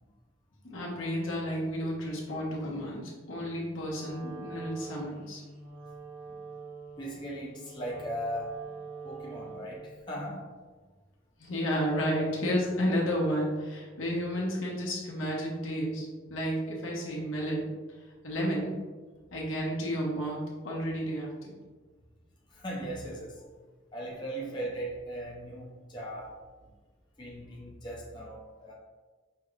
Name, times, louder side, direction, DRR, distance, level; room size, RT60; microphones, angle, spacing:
voice 1, 0.6-5.4 11.4-17.7 18.2-18.7 19.3-21.6, equal, 80° left, -3 dB, 1.1 m, -32 dB
Wind instrument woodwind instrument, 3.9-9.9, right 4 dB, 85° right, 1.4 m, -45 dB
voice 2, 7.0-8.6 9.0-10.5 22.5-23.5 23.9-26.4 27.2-28.7, right 1 dB, 25° left, -4 dB, 0.6 m, -38 dB
5.5 x 3.2 x 2.4 m, 1.3 s
head